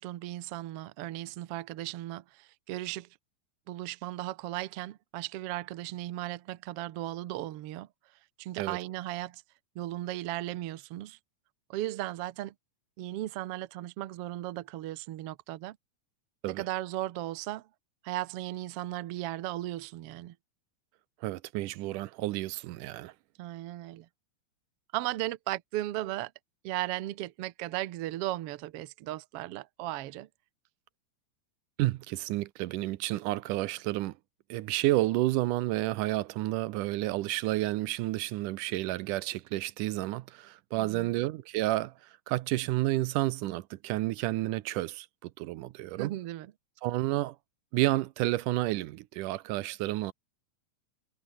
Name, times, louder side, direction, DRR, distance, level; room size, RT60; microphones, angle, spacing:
voice 1, 0.0-3.1 3.7-7.9 8.4-9.4 9.7-11.2 11.7-12.5 13.0-15.8 16.5-17.7 18.0-20.3 23.4-24.1 24.9-26.3 26.6-30.3 40.8-41.1 46.0-46.5, right 15 dB, 65° right, 1.5 m, -36 dB
voice 2, 21.2-23.1 31.8-34.1 34.5-41.9 42.3-46.1 46.8-47.4 47.7-50.1, right 17 dB, 80° right, 2.3 m, -30 dB
omnidirectional pair, 3.6 m